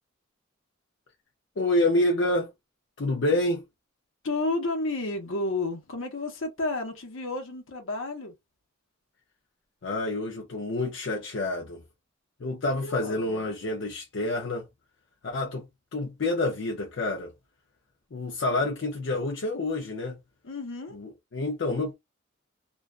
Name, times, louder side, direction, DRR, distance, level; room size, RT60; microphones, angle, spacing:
voice 1, 1.6-2.5 3.0-3.6 9.8-11.8 12.4-14.7 15.2-17.3 18.1-20.2 20.9-21.9, left 2 dB, 60° left, 0.5 m, -28 dB
voice 2, 4.2-8.3 12.6-13.4 20.4-21.0, left 2 dB, 75° left, 0.9 m, -31 dB
2.4 x 2.2 x 2.4 m
head